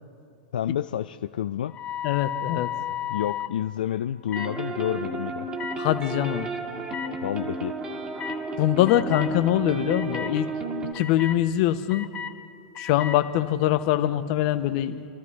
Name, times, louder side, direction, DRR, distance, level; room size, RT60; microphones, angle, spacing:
voice 1, 0.5-1.7 3.1-5.5 7.2-7.8, left 10 dB, 80° left, 8 dB, 0.4 m, -29 dB
sound 1, 1.7-3.5 4.3-4.5 5.6-5.8 6.9-7.1 8.2-8.4 8.9-9.3 9.9-10.3 10.9-11.4 11.9-12.3 12.7-13.2, left 10 dB, 30° left, 0.8 m, -33 dB
voice 2, 2.0-2.7 5.8-6.5 8.6-10.5 10.9-12.1 12.8-14.9, left 13 dB, 55° left, 10 dB, 0.9 m, -23 dB
sound 2, 4.4-10.9, right 2 dB, 25° right, 1.8 m, -32 dB
26.0 x 13.5 x 3.2 m, 2.5 s
hypercardioid pair, 110°, 5 cm